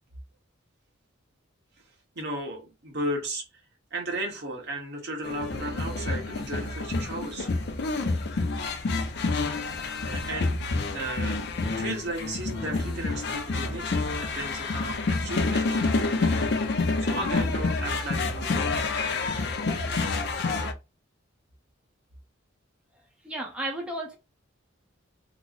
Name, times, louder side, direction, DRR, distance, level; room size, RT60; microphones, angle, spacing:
voice 1, 2.1-3.5 3.9-7.5 9.4-9.7 10.0-16.4 17.0-19.6 20.2-20.3, right 1 dB, 55° right, 1.1 m, -35 dB
sound 1, 5.2-20.7, left 3 dB, 55° left, 0.5 m, -28 dB
voice 2, 23.2-24.2, right 1 dB, 5° right, 0.6 m, -33 dB
3.0 x 2.0 x 3.8 m
head